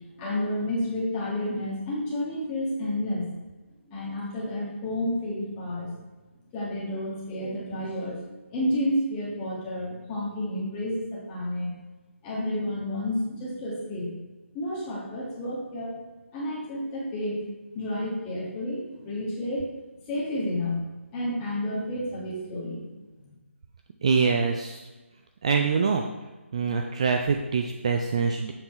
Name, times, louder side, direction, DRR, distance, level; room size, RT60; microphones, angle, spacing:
voice 1, 0.2-3.3 3.9-5.9 6.5-11.7 12.2-14.1 14.5-15.9 16.3-17.4 17.7-19.7 20.1-20.8 21.1-22.9 23.2-23.3, left 1 dB, 15° left, -5 dB, 1.5 m, -30 dB
voice 2, 24.0-24.8 25.4-26.1 26.5-28.5, right 5 dB, 30° right, 4 dB, 0.4 m, -24 dB
7.1 x 5.5 x 4.2 m, 1.2 s
hypercardioid pair, 170°, 7 cm